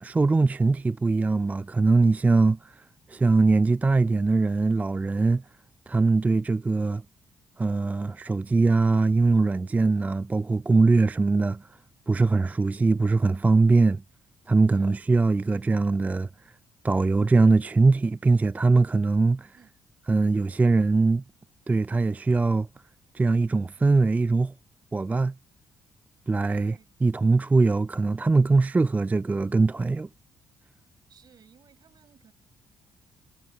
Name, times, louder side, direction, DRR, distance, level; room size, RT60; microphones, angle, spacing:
voice 1, 0.0-2.6 3.1-5.4 5.9-7.0 7.6-11.7 12.1-14.0 14.5-16.3 16.8-19.6 20.1-21.2 21.7-22.7 23.1-24.5 24.9-25.3 26.3-26.8 27.0-30.1, right 3 dB, 20° right, 0.3 m, -22 dB
voice 2, 14.7-15.0 19.5-19.7 26.5-26.9 31.1-32.3, right 7 dB, 55° right, 5.3 m, -58 dB
supercardioid pair, 60°, 8 cm